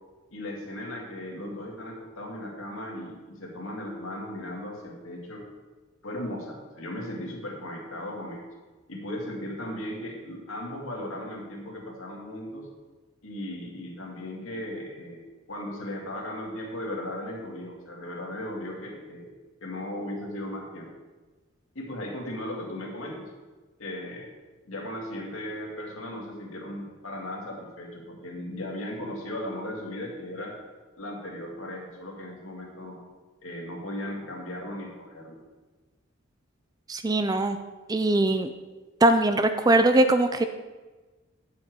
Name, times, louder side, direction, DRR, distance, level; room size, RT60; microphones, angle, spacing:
voice 1, 0.3-5.5 6.0-8.4 8.9-12.7 13.2-19.3 19.6-20.9 21.7-23.3 23.8-24.3 24.7-30.6 31.0-33.0 33.4-35.4, left 1 dB, 75° left, -1 dB, 2.2 m, -37 dB
voice 2, 36.9-37.6 37.9-38.5 39.0-40.4, right 2 dB, 20° right, 8 dB, 0.3 m, -21 dB
9.8 x 7.2 x 4.7 m, 1.2 s
head